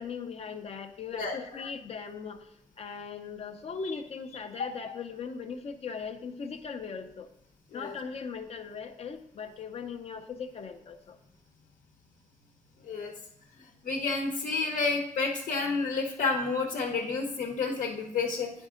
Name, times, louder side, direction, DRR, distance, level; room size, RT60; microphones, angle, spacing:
voice 1, 0.0-7.3 7.7-11.2, left 5 dB, 50° left, 6 dB, 0.6 m, -39 dB
voice 2, 13.8-18.5, left 4 dB, 85° left, 1 dB, 1.0 m, -30 dB
9.8 x 5.3 x 3.7 m, 0.71 s
wide cardioid pair, 160°, 13 cm